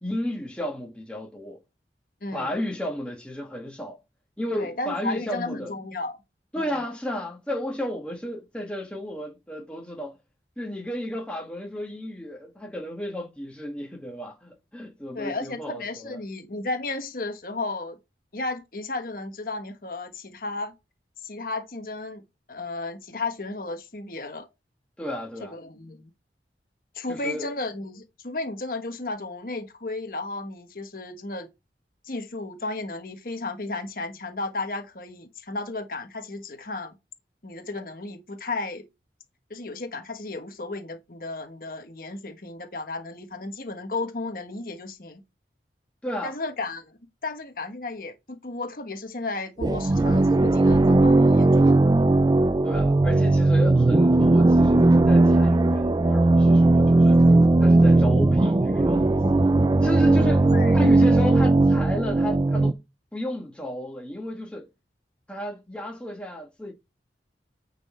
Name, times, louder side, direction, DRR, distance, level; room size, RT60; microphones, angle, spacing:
voice 1, 0.0-1.6 2.3-4.0 4.4-5.7 6.5-10.2 10.6-16.2 25.0-25.6 27.1-27.5 46.0-46.3 52.6-57.2 57.6-59.2 59.8-60.5 60.7-62.8 63.1-64.7 65.3-66.7, equal, 5° left, 1.5 m, -33 dB
voice 2, 2.2-2.5 4.5-6.2 6.6-6.7 15.1-18.0 18.3-20.7 21.2-22.2 22.5-24.5 25.4-26.1 26.9-31.5 32.0-37.0 37.4-38.8 39.5-45.2 46.2-47.0 47.2-51.8 60.5-60.8, left 2 dB, 50° left, 1.3 m, -34 dB
sound 1, 49.6-62.7, right 2 dB, 20° right, 0.3 m, -18 dB
9.8 x 4.1 x 4.3 m
head